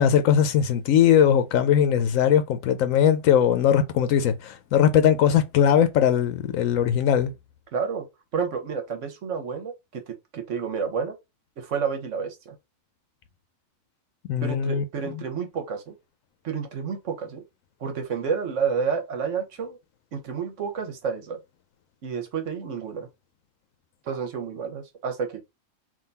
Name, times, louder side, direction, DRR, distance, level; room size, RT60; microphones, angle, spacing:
voice 1, 0.0-7.3 14.3-14.8, left 9 dB, 85° left, 1.0 m, -20 dB
voice 2, 7.7-8.1 8.3-11.2 11.6-12.5 14.4-16.0 16.4-17.4 17.8-19.8 20.1-21.4 22.0-23.1 24.0-25.4, right 6 dB, 70° right, 1.3 m, -30 dB
3.7 x 2.6 x 4.0 m
omnidirectional pair, 1.4 m